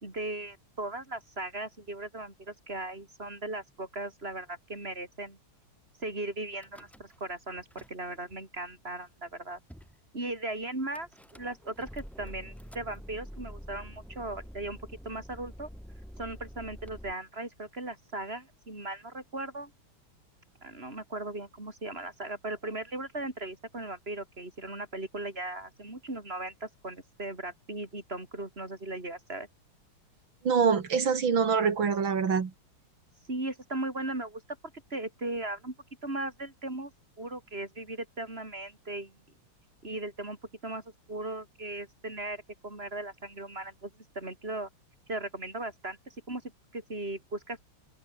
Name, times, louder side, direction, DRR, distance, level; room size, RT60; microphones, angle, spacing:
voice 1, 0.0-5.4 6.0-9.6 10.1-14.8 15.1-15.7 16.2-19.7 20.6-29.5 33.3-34.4 34.9-35.7 36.0-36.9 37.2-39.1 39.8-40.4 40.6-40.8 41.1-44.7 45.1-46.4 46.7-47.6, right 2 dB, 25° right, 5.7 m, -37 dB
Car / Engine starting / Idling, 6.5-7.3 7.6-8.4 9.0-9.1 9.3-9.4 9.7-10.0 10.9-17.1, equal, ahead, 6.5 m, -47 dB
voice 2, 30.4-32.5, right 6 dB, 65° right, 3.0 m, -25 dB
open air
omnidirectional pair, 2.3 m